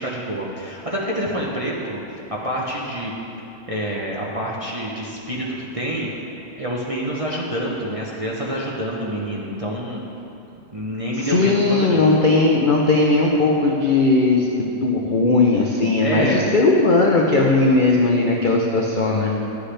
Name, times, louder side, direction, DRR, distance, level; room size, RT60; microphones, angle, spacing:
voice 1, 0.0-2.0 2.3-3.1 3.7-5.5 5.7-6.2 6.6-10.0 10.7-12.0 16.0-16.5, equal, 35° right, -4 dB, 0.6 m, -27 dB
voice 2, 11.2-19.3, left 3 dB, 75° left, -1 dB, 0.4 m, -18 dB
11.5 x 8.2 x 3.3 m, 3.0 s
omnidirectional pair, 1.8 m